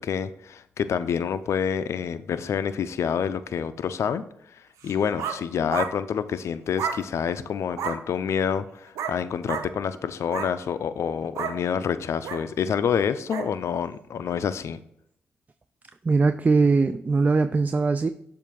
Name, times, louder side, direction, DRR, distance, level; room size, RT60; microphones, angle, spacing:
voice 1, 0.0-4.2 4.8-14.8, left 7 dB, 70° left, 12 dB, 0.4 m, -27 dB
sound 1, 4.8-5.4 5.7-5.9 6.8-7.0 7.7-8.0 8.9-9.2 9.5-9.7 10.2-10.5 11.3-11.6 12.2-12.4 13.3-13.5, right 7 dB, 85° right, 0.6 m, -30 dB
voice 2, 16.0-18.1, right 4 dB, 30° right, 11 dB, 0.3 m, -21 dB
7.3 x 2.5 x 5.3 m, 0.72 s
supercardioid pair, 45°, 5 cm